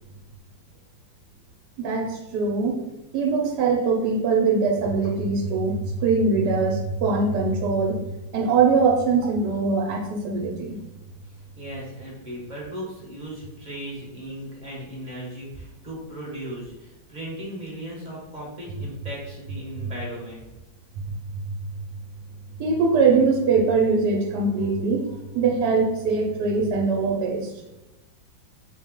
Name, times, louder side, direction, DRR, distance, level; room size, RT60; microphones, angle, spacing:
voice 1, 1.8-2.8 3.1-8.0 8.3-10.8 22.6-25.1 25.3-27.5, right 4 dB, 70° right, 1 dB, 1.0 m, -22 dB
voice 2, 11.6-20.4, equal, 35° right, -4 dB, 0.8 m, -37 dB
4.3 x 2.3 x 3.5 m, 1.0 s
omnidirectional pair, 2.2 m